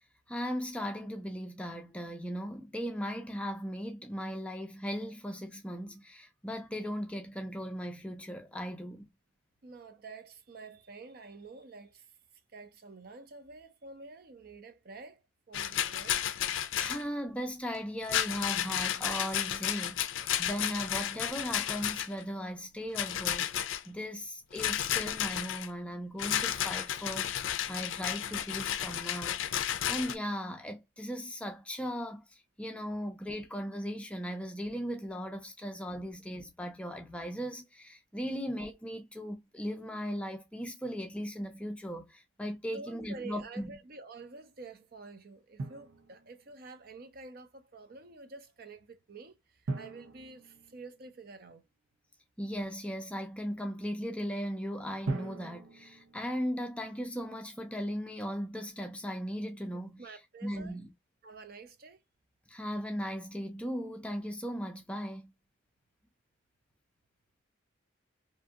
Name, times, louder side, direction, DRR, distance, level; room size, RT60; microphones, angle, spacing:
voice 1, 0.3-9.1 16.8-23.5 23.9-43.7 52.4-60.0 60.4-60.9 62.5-65.3, equal, 5° left, 0.4 m, -37 dB
voice 2, 9.6-12.2 12.5-16.3 42.7-51.7 60.0-60.8 61.2-62.0, right 3 dB, 50° right, 0.5 m, -49 dB
Rattle, 15.5-17.0 18.0-22.2 22.9-23.8 24.6-25.7 26.2-30.2, left 11 dB, 75° left, 0.4 m, -32 dB
Drum, 45.6-46.7 49.7-51.5 55.0-57.0, right 3 dB, 90° right, 0.6 m, -41 dB
2.8 x 2.6 x 2.3 m
head